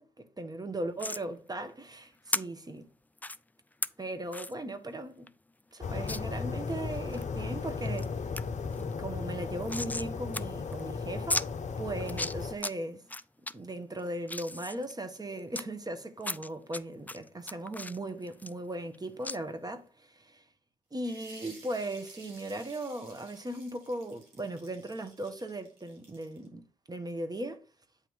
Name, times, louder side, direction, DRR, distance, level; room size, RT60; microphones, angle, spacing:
voice 1, 0.0-2.9 4.0-5.3 5.7-8.1 8.7-11.5 11.8-13.0 13.5-20.4 20.9-26.6 26.9-27.7, right 1 dB, 20° right, 1.2 m, -38 dB
sound 1, 1.0-1.2 2.3-2.4 3.2-3.4 3.8-3.9 4.3-4.5 4.9-5.0 5.3-5.4 6.1-6.2 6.7-7.2 7.7-8.1 8.4-8.5 8.7-10.1 10.3-10.4 10.7-10.8 11.3-11.5 12.0-12.7 13.1-13.5 14.0-15.6 16.2-16.8 17.1-19.0 19.2-19.4, left 2 dB, 10° left, 0.4 m, -35 dB
sound 2, 5.8-12.5, left 5 dB, 40° left, 0.8 m, -36 dB
sound 3, 21.0-26.5, right 3 dB, 80° right, 1.7 m, -55 dB
8.4 x 3.0 x 5.3 m
hypercardioid pair, 45°, 18 cm